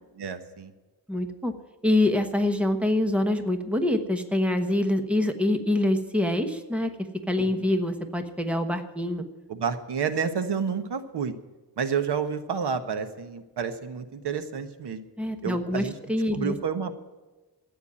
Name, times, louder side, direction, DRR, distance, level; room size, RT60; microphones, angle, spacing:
voice 1, 0.2-0.7 7.6-7.7 9.5-11.3 11.8-15.0 15.4-15.9 16.3-17.0, right 6 dB, 75° right, 9 dB, 1.4 m, -30 dB
voice 2, 1.1-1.5 1.8-6.9 7.3-9.2 15.2-16.6, left 1 dB, 5° right, 6 dB, 1.2 m, -25 dB
14.5 x 9.3 x 8.9 m, 1.2 s
wide cardioid pair, 175°, 40 cm